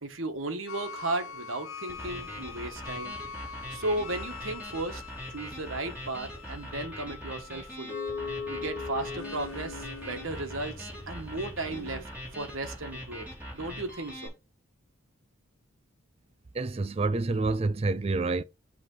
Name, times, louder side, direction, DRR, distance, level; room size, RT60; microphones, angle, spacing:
voice 1, 0.0-3.2 3.7-5.0 5.3-8.0 8.5-13.3 13.5-14.3, right 2 dB, 70° right, 1.3 m, -35 dB
sound 1, 0.7-12.0, left 5 dB, 75° left, 1.2 m, -41 dB
sound 2, 1.9-14.3, equal, 10° right, 2.8 m, -42 dB
voice 2, 16.5-18.4, right 3 dB, 30° right, 0.3 m, -28 dB
7.8 x 3.3 x 5.4 m
head